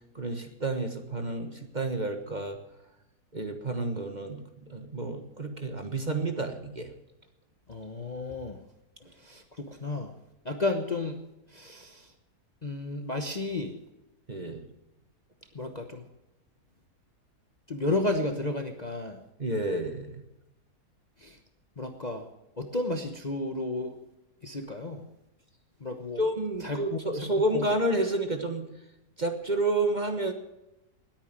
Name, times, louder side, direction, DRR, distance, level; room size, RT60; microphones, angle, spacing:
voice 1, 0.1-2.6 3.3-4.4 4.7-6.9 14.3-14.6 19.4-20.2 26.2-28.7 29.2-30.3, right 2 dB, 30° right, 6 dB, 1.4 m, -30 dB
voice 2, 7.7-8.6 9.3-10.1 10.4-11.2 11.5-12.0 12.6-13.7 15.5-16.0 17.7-19.2 21.2-21.3 21.8-22.2 22.6-23.9 24.4-25.0 25.8-26.2 26.6-27.0 27.5-27.6, left 2 dB, 30° left, 5 dB, 1.0 m, -32 dB
20.0 x 9.0 x 7.6 m, 0.91 s
omnidirectional pair, 1.7 m